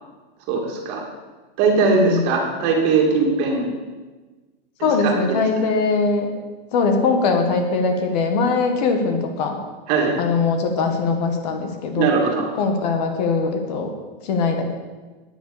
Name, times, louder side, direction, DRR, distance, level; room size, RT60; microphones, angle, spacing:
voice 1, 0.5-1.0 1.6-3.7 4.8-5.4 9.9-10.1 11.9-12.4, right 4 dB, 35° right, 0 dB, 2.5 m, -20 dB
voice 2, 1.8-2.3 4.8-6.3 6.7-9.6 10.2-12.1 12.6-13.9 14.2-14.7, left 4 dB, 45° left, 5 dB, 1.7 m, -21 dB
9.6 x 9.1 x 7.1 m, 1.3 s
supercardioid pair, 175°, 30 cm